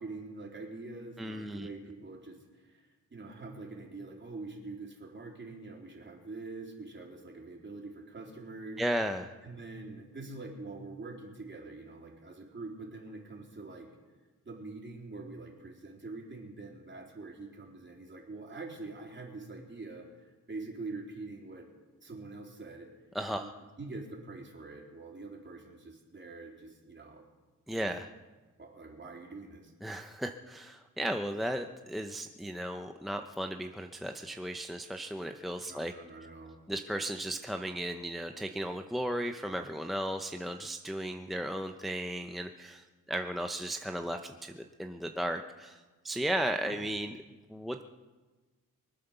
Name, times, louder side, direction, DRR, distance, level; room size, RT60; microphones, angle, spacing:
voice 1, 0.0-8.8 9.4-13.9 14.5-21.7 22.0-22.9 23.3-23.5 23.8-27.2 27.8-27.9 28.6-29.7 35.6-36.6 46.6-47.0, right 3 dB, 35° right, 0 dB, 3.7 m, -45 dB
voice 2, 1.2-1.7 8.8-9.3 23.1-23.5 27.7-28.1 29.8-35.9 36.7-47.1 47.5-47.8, right 1 dB, ahead, 4 dB, 0.7 m, -35 dB
24.0 x 8.5 x 6.9 m, 1.3 s
cardioid pair, 85°, 33 cm